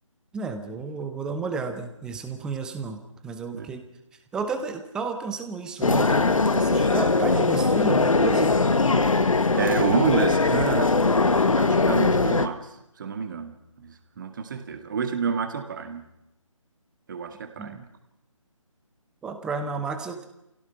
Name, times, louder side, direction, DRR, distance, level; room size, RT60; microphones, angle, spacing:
voice 1, 0.3-3.8 4.3-8.6 17.6-17.8 19.2-20.3, right 4 dB, 5° right, 7 dB, 0.7 m, -32 dB
sound 1, 5.8-12.5, left 3 dB, 70° left, 1.4 m, -21 dB
voice 2, 9.6-10.9 11.6-16.0 17.1-17.9, right 6 dB, 35° right, 7 dB, 2.1 m, -28 dB
28.0 x 17.0 x 5.7 m, 0.87 s
figure-of-eight pair, 155°, 17 cm